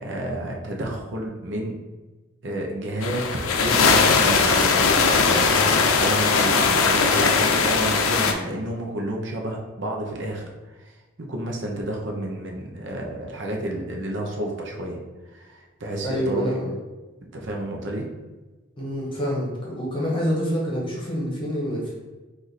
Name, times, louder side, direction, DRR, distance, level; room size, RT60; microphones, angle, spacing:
voice 1, 0.0-1.8 2.4-11.0 11.3-15.0 15.3-16.6 17.3-18.1, right 1 dB, 55° right, 0 dB, 0.7 m, -30 dB
sound 1, 3.0-8.3, left 4 dB, 80° left, 0.5 m, -19 dB
voice 2, 16.0-16.7 18.8-21.9, equal, 25° left, -4 dB, 1.1 m, -27 dB
4.7 x 2.6 x 4.1 m, 1.2 s
head